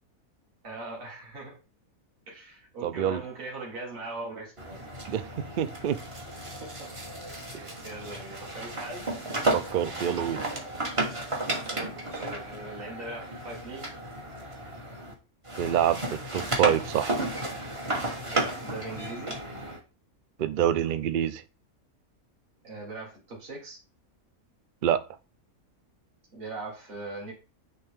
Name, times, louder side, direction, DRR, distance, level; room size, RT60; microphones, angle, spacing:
voice 1, 0.6-1.6 2.3-4.8 6.6-6.9 7.3-7.5 7.8-9.0 11.7-13.8 18.3-19.4 22.6-23.8 26.3-27.3, right 2 dB, 40° right, 1.9 m, -40 dB
voice 2, 2.8-3.2 5.1-5.3 5.6-6.0 7.5-7.7 9.5-10.4 15.6-17.2 20.4-21.4 24.8-25.0, right 10 dB, 75° right, 0.4 m, -26 dB
sound 1, 4.6-15.1 15.4-19.8, right 2 dB, 25° right, 1.1 m, -33 dB
9.1 x 3.4 x 3.5 m
omnidirectional pair, 1.5 m